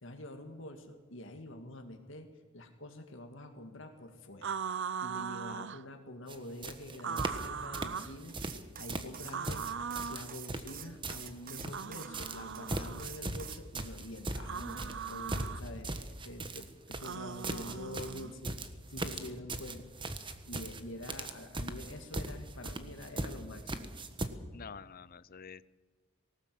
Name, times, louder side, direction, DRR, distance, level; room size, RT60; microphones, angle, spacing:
voice 1, 0.0-2.3 2.5-8.4 8.8-19.9 20.5-23.9, left 1 dB, 65° left, 4 dB, 2.0 m, -46 dB
sound 1, 4.4-5.8 7.0-8.2 9.3-10.3 11.7-13.1 14.4-15.6 17.0-18.3, right 6 dB, 60° right, 0.6 m, -39 dB
sound 2, 6.3-6.4 6.6-7.5 7.7-8.6 8.9-11.9 12.1-24.3, right 2 dB, 25° right, 1.3 m, -39 dB
sound 3, 8.3-12.1 12.6-13.6, right 10 dB, 45° right, 1.1 m, -47 dB
voice 2, 24.5-25.6, left 6 dB, 45° left, 17 dB, 0.6 m, -48 dB
19.5 x 18.5 x 7.7 m, 1.4 s
head